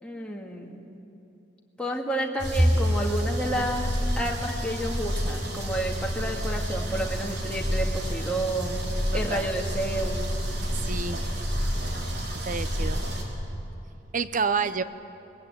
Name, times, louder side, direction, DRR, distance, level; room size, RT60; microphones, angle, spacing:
voice 1, 0.0-0.8 1.8-3.9 4.2-8.8 9.1-10.3, right 1 dB, 5° left, -2 dB, 2.0 m, -30 dB
sound 1, 2.4-13.2, equal, 60° right, 3.5 m, -28 dB
voice 2, 9.1-9.5 10.8-11.2 12.5-13.0 14.1-14.8, right 5 dB, 40° right, 13 dB, 0.8 m, -28 dB
22.5 x 20.0 x 9.0 m, 2.8 s
head